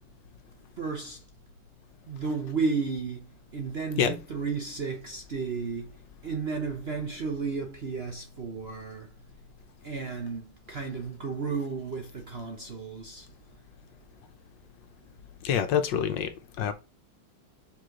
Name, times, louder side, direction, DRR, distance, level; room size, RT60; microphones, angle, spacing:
voice 1, 0.8-1.2 2.1-5.9 6.2-9.1 9.8-13.2, right 5 dB, 45° right, 0.8 m, -33 dB
voice 2, 15.4-16.3 16.6-16.7, left 8 dB, 75° left, 1.5 m, -26 dB
5.5 x 4.9 x 3.8 m
omnidirectional pair, 2.1 m